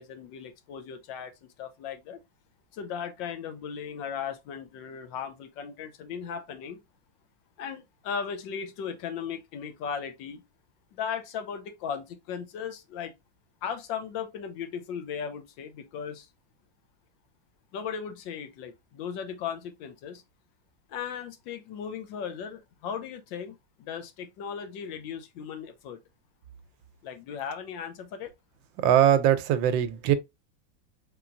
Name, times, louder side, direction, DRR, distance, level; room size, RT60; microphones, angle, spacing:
voice 1, 0.0-1.3 1.6-2.2 2.7-6.8 7.6-10.4 10.9-13.1 13.6-16.3 17.7-20.2 20.9-26.0 27.0-28.3, left 7 dB, 80° left, 1.4 m, -37 dB
voice 2, 28.8-30.1, right 10 dB, 80° right, 1.3 m, -21 dB
4.3 x 3.7 x 2.4 m
omnidirectional pair, 2.1 m